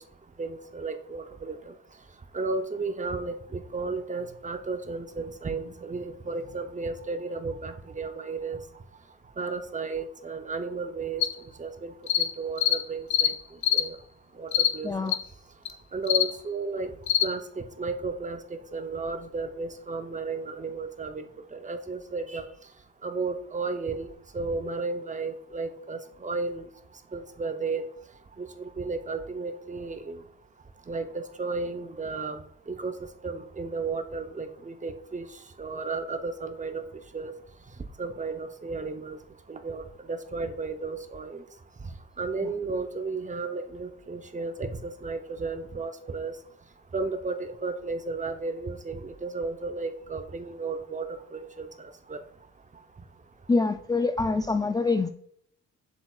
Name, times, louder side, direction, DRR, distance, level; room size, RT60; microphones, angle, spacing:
voice 1, 0.4-1.7 2.3-8.6 9.4-11.2 11.6-13.3 13.7-14.0 14.4-15.1 15.9-16.9 17.2-21.3 21.5-22.4 23.0-24.1 24.3-26.7 27.1-27.8 28.4-30.2 30.9-32.4 32.7-32.9 33.2-35.3 35.6-36.8 37.1-37.3 38.0-39.2 39.5-41.4 41.8-41.9 42.2-46.3 46.9-52.2, right 3 dB, 25° right, 7 dB, 0.8 m, -33 dB
sound 1, 11.2-11.3 12.1-12.3 12.6-12.8 13.1-13.3 13.6-13.9 14.5-14.7 15.1-15.2 15.7-15.8 16.1-16.3 17.1-17.3, left 11 dB, 70° left, 0.9 m, -23 dB
voice 2, 14.8-15.2 53.5-55.1, left 3 dB, 15° left, 7 dB, 0.3 m, -25 dB
7.7 x 7.0 x 2.5 m, 0.66 s
cardioid pair, 90°, 30 cm